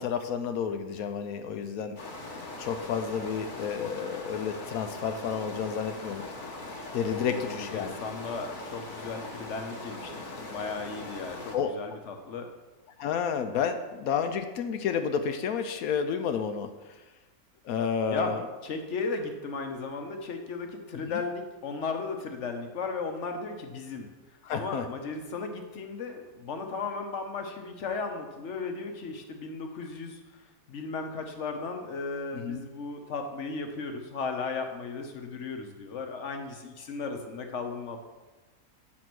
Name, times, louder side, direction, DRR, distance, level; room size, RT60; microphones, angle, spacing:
voice 1, 0.0-2.0 2.6-6.2 6.9-8.0 11.5-11.7 13.0-16.7 17.6-18.4 20.9-21.2 24.4-24.9 32.3-32.6, left 7 dB, 75° left, 8 dB, 1.0 m, -30 dB
sound 1, 2.0-11.6, left 2 dB, 35° left, 1.2 m, -41 dB
voice 2, 7.1-12.5 18.1-24.1 24.5-30.2 30.7-38.0, left 4 dB, 55° left, 5 dB, 1.1 m, -35 dB
7.9 x 4.2 x 6.1 m, 1.2 s
omnidirectional pair, 1.6 m